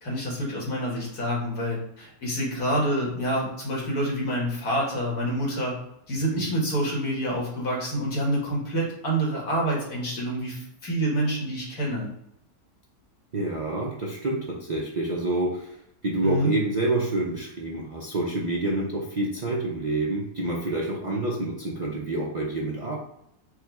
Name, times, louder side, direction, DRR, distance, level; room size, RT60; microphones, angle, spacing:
voice 1, 0.0-5.8 6.1-12.1 16.2-16.5, right 1 dB, 85° left, -3 dB, 2.1 m, -27 dB
voice 2, 13.3-15.8 16.0-23.0, right 2 dB, 55° right, -3 dB, 0.4 m, -28 dB
4.7 x 2.4 x 4.5 m, 0.76 s
omnidirectional pair, 1.6 m